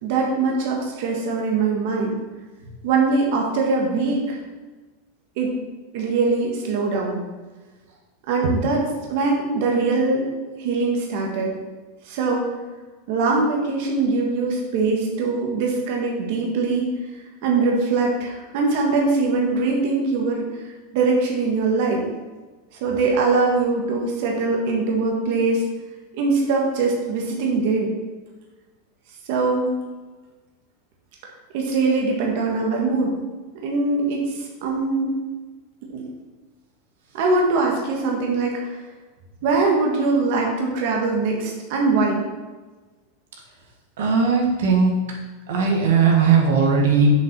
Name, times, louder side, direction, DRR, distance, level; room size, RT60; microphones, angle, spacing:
voice 1, 0.0-2.2 2.8-4.4 5.4-5.5 5.9-7.2 8.3-8.8 9.1-10.3 10.6-11.5 12.0-12.5 13.1-16.9 17.4-22.0 22.8-25.6 26.2-27.9 29.3-29.7 31.5-33.1 33.6-35.2 35.9-36.0 37.1-38.6 39.4-42.2, right 3 dB, 45° right, 0 dB, 1.6 m, -22 dB
voice 2, 44.0-44.9 45.5-47.1, right 5 dB, 75° right, 0 dB, 1.6 m, -18 dB
7.1 x 5.5 x 6.0 m, 1.3 s
supercardioid pair, 175°, 0 cm